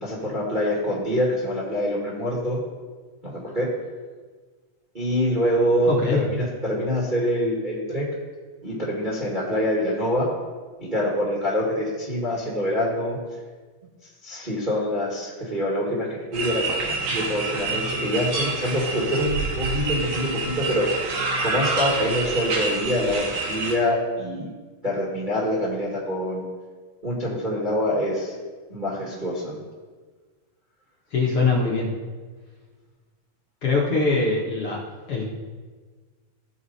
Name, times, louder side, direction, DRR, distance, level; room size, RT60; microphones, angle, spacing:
voice 1, 0.0-2.6 3.2-3.7 4.9-8.1 8.6-10.3 10.8-13.2 14.2-21.0 21.4-24.5 24.8-26.4 27.0-28.3 28.7-29.6, equal, 20° right, -5 dB, 1.3 m, -25 dB
voice 2, 5.9-6.2 31.1-31.9 33.6-34.8 35.1-35.3, left 3 dB, 60° left, -4 dB, 1.7 m, -22 dB
sound 1, 16.3-23.7, right 3 dB, 75° right, 2.8 m, -27 dB
14.5 x 4.8 x 4.1 m, 1.4 s
omnidirectional pair, 3.6 m